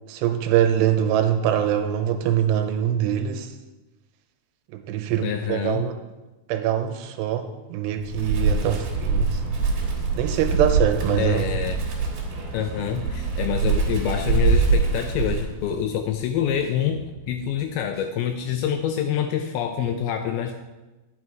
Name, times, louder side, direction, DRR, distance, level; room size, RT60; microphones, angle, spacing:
voice 1, 0.1-3.5 4.7-6.0 6.5-9.6 10.2-11.5, right 10 dB, 85° right, 7 dB, 2.9 m, -23 dB
voice 2, 5.2-5.8 11.2-11.8 12.5-20.5, left 9 dB, 85° left, 6 dB, 2.2 m, -26 dB
sound 1, 7.9-18.6, right 2 dB, 60° left, 1.0 m, -46 dB
Wind, 8.0-15.8, right 4 dB, 65° right, 2.6 m, -24 dB
9.6 x 6.1 x 4.6 m, 1.1 s
omnidirectional pair, 4.8 m